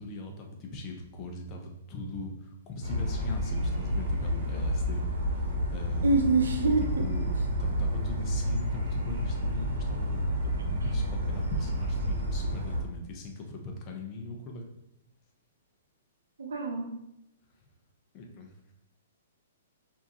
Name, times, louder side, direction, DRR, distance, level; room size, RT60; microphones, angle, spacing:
voice 1, 0.0-6.4 6.8-7.3 7.6-10.3 10.6-14.7 18.1-18.5, left 2 dB, 30° left, 1 dB, 0.8 m, -40 dB
sound 1, 2.8-12.8, equal, 70° right, 1.0 m, -30 dB
voice 2, 6.0-6.8 16.4-16.9, right 3 dB, 85° right, 3 dB, 0.7 m, -25 dB
5.0 x 2.8 x 2.9 m, 0.82 s
hypercardioid pair, 140°, 0 cm